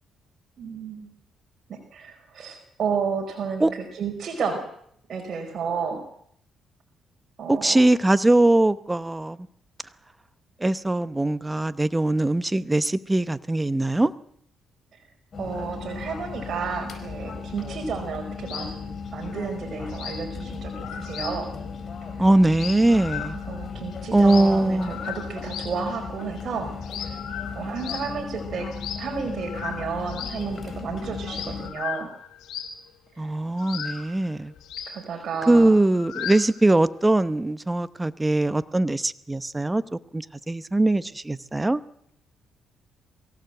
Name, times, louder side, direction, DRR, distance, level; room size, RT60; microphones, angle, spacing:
voice 1, 0.6-1.1 1.7-4.6 5.1-6.0 7.4-7.8 15.4-18.7 19.1-21.5 23.5-26.7 27.0-27.2 27.5-28.7 29.0-32.1 33.1-33.3 34.9-35.7, right 5 dB, 55° right, 1 dB, 4.7 m, -32 dB
voice 2, 7.5-9.4 10.6-14.1 22.2-23.4 24.1-24.9 33.2-34.5 35.5-41.8, right 2 dB, 15° right, 14 dB, 0.9 m, -21 dB
sound 1, 15.3-31.7, left 5 dB, 45° left, 4.6 m, -36 dB
sound 2, 18.5-18.8 19.1-19.2 19.5-19.6 19.8-20.3 20.6-21.4 21.7-21.8 22.0-22.1 22.3-23.6 23.9-25.8 26.2-26.4 26.8-28.1 28.7-29.1 29.4-31.0 31.2-32.9 33.6-36.7, left 9 dB, 85° left, 3.5 m, -37 dB
23.5 x 16.0 x 7.9 m, 0.69 s
cardioid pair, 90°, 0 cm